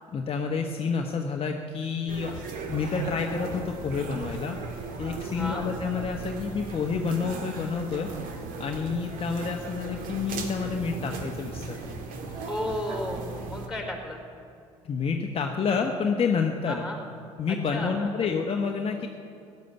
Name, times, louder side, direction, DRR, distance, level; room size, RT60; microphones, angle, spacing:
voice 1, 0.1-2.3 2.7-8.1 8.6-12.0 14.8-16.8 17.4-19.1, left 5 dB, 35° left, 2 dB, 1.1 m, -29 dB
sound 1, 2.1-13.7, right 3 dB, 60° right, 1.9 m, -37 dB
voice 2, 5.3-5.6 12.5-14.2 16.7-17.0 17.5-18.1, left 1 dB, ahead, 2 dB, 4.5 m, -33 dB
15.5 x 10.5 x 6.9 m, 2.5 s
hypercardioid pair, 65°, 16 cm